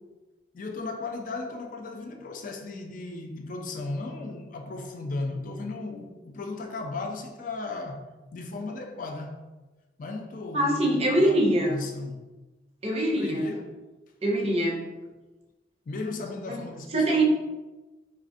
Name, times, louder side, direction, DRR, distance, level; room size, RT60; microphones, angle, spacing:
voice 1, 0.5-8.1 8.3-9.5 10.0-12.3 13.2-13.8 15.9-17.2, left 3 dB, 45° left, 0.4 m, -36 dB
voice 2, 10.5-11.8 12.8-13.5 14.2-14.9 16.5-16.6 16.9-17.2, right 1 dB, 35° right, 0.5 m, -23 dB
4.1 x 2.5 x 2.5 m
head